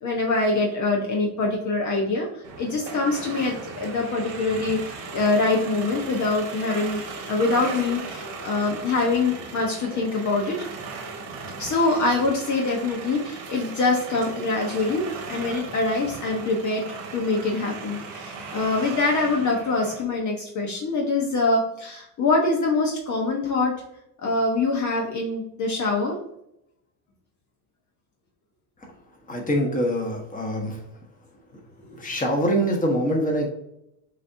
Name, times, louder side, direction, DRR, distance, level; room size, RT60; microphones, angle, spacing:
voice 1, 0.0-7.0 7.3-10.6 11.6-16.8 17.1-23.7 24.2-26.2, left 3 dB, 45° left, 0 dB, 1.1 m, -24 dB
sound 1, 2.4-20.0, right 4 dB, 85° right, 1.7 m, -37 dB
voice 2, 29.3-30.8 32.0-33.5, equal, 20° left, 1 dB, 1.4 m, -24 dB
6.3 x 2.8 x 2.7 m, 0.80 s
supercardioid pair, 100°, 41 cm